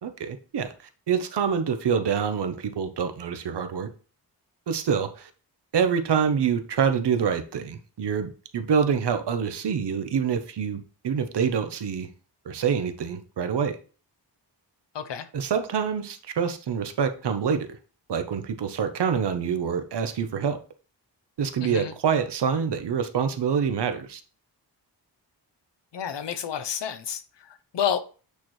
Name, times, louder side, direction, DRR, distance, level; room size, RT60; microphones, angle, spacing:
voice 1, 0.0-0.7 1.1-3.9 4.7-5.3 5.7-12.1 12.5-13.8 15.3-17.7 18.1-20.6 21.4-24.2, right 7 dB, 70° right, 0.9 m, -26 dB
voice 2, 14.9-15.3 21.6-21.9 25.9-27.2 27.7-28.0, left 8 dB, 75° left, 0.8 m, -29 dB
8.4 x 4.4 x 3.2 m
wide cardioid pair, 160°, 42 cm